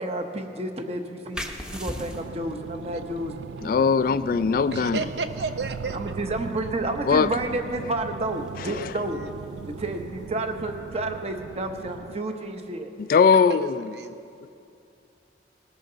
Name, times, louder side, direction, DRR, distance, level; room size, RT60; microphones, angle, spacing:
voice 1, 0.0-3.5 5.9-9.2 9.7-12.9, right 2 dB, 35° right, 5 dB, 1.0 m, -30 dB
sound 1, 1.3-12.6, equal, 5° right, 0.8 m, -44 dB
sound 2, 2.0-12.2, right 6 dB, 85° right, 0.3 m, -39 dB
voice 2, 3.6-5.0 7.1-7.3 8.6-8.9 13.0-13.8, left 5 dB, 50° left, 14 dB, 0.3 m, -20 dB
voice 3, 4.7-6.2 8.7-8.8 9.1-9.3 13.5-14.1, right 3 dB, 70° right, 8 dB, 0.8 m, -32 dB
19.0 x 14.0 x 3.9 m, 2.6 s
head